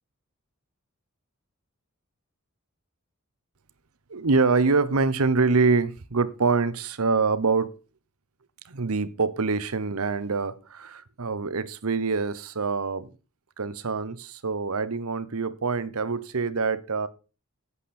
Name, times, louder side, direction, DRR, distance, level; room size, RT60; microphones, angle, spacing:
voice 1, 4.1-7.7 8.7-13.1 13.6-17.1, right 4 dB, 90° right, 0.9 m, -25 dB
11.0 x 8.2 x 4.3 m
head